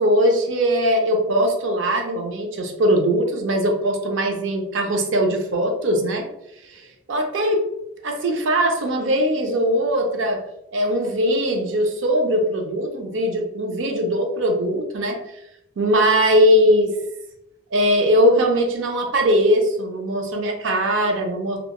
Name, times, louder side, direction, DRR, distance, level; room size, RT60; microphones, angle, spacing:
voice 1, 0.0-6.3 6.7-6.8 7.1-7.7 8.0-10.4 10.7-15.2 15.8-16.9 17.7-21.6, equal, 80° right, 3 dB, 0.5 m, -20 dB
2.9 x 2.3 x 2.2 m, 0.82 s
head